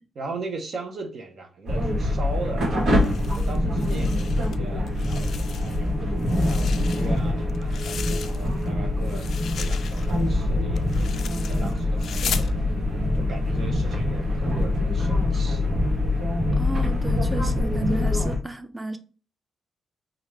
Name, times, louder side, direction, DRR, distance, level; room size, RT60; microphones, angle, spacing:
voice 1, 0.2-2.7 3.4-5.9 6.5-12.6 13.1-15.6, right 3 dB, 50° right, 0.9 m, -38 dB
sound 1, 1.7-18.4, left 1 dB, 70° right, 1.5 m, -24 dB
sound 2, 2.9-4.6 4.9-5.9 6.2-8.7 9.0-12.5, left 7 dB, 60° left, 0.3 m, -37 dB
voice 2, 16.6-19.0, right 1 dB, 10° right, 0.5 m, -32 dB
4.9 x 2.4 x 3.2 m
cardioid pair, 140°, 0 cm